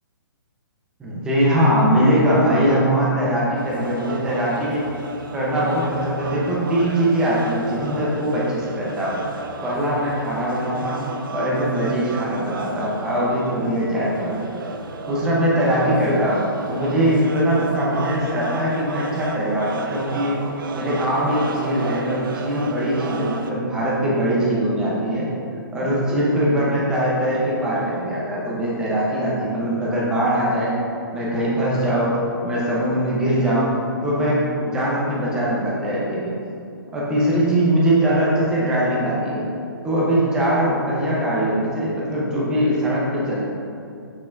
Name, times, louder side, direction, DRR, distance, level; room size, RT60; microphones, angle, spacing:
voice 1, 1.0-4.8 5.3-9.2 9.6-14.5 15.1-16.4 16.7-20.4 20.7-25.3 25.7-30.7 31.1-32.2 32.4-33.7 34.0-36.3 36.9-39.4 39.8-43.4, equal, 5° right, -6 dB, 0.9 m, -21 dB
sound 1, 3.6-23.5, right 4 dB, 65° right, 0.6 m, -33 dB
6.6 x 6.1 x 2.6 m, 2.5 s
hypercardioid pair, 165°, 12 cm